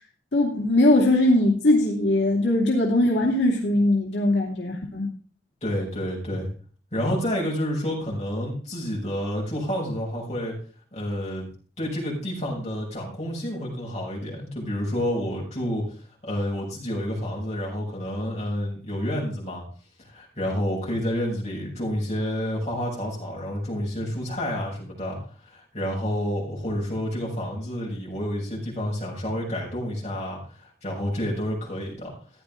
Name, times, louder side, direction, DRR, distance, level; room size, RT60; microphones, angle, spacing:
voice 1, 0.3-5.1, left 1 dB, 80° left, -2 dB, 2.8 m, -20 dB
voice 2, 5.6-6.5 6.9-10.6 10.9-11.5 11.8-15.8 16.2-19.6 20.0-25.2 25.4-32.1, equal, 35° left, -4 dB, 7.1 m, -29 dB
14.5 x 10.5 x 3.7 m, 0.40 s
head